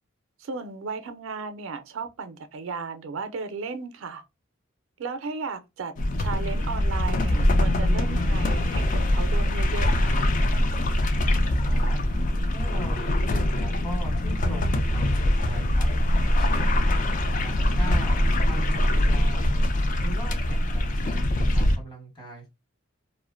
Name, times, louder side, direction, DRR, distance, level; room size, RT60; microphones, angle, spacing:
voice 1, 0.4-4.2 5.0-10.2, right 4 dB, 85° right, 0.4 m, -35 dB
sound 1, 6.0-21.8, left 1 dB, 40° left, 0.3 m, -23 dB
voice 2, 11.6-12.0 12.5-16.8 17.4-19.6 20.0-22.5, right 1 dB, 25° left, 1.0 m, -40 dB
2.4 x 2.1 x 2.4 m
head